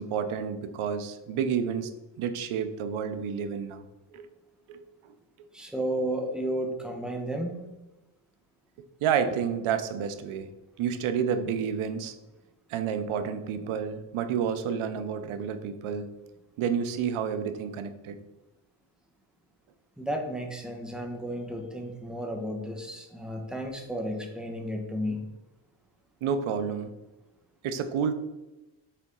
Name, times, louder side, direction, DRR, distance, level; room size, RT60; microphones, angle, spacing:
voice 1, 0.0-1.9 2.2-3.8 4.1-4.3 4.7-4.8 9.0-10.5 10.8-12.1 12.7-16.1 16.6-18.2 26.2-26.9 27.6-28.1, right 7 dB, 90° right, 10 dB, 0.8 m, -30 dB
voice 2, 5.5-7.7 20.0-25.3, equal, ahead, 1 dB, 1.0 m, -33 dB
6.8 x 4.1 x 3.7 m, 1.0 s
cardioid pair, 105°, 48 cm